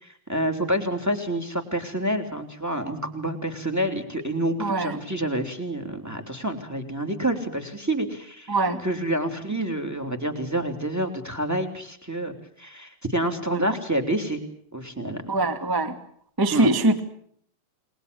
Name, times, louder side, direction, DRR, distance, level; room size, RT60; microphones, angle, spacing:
voice 1, 0.0-14.4 14.7-15.2 16.5-16.7, right 1 dB, 5° right, 6 dB, 2.3 m, -28 dB
voice 2, 4.6-4.9 8.5-8.8 13.5-13.6 15.3-15.9 16.4-17.0, right 2 dB, 25° right, 8 dB, 0.4 m, -23 dB
30.0 x 21.5 x 6.9 m, 0.64 s
omnidirectional pair, 4.7 m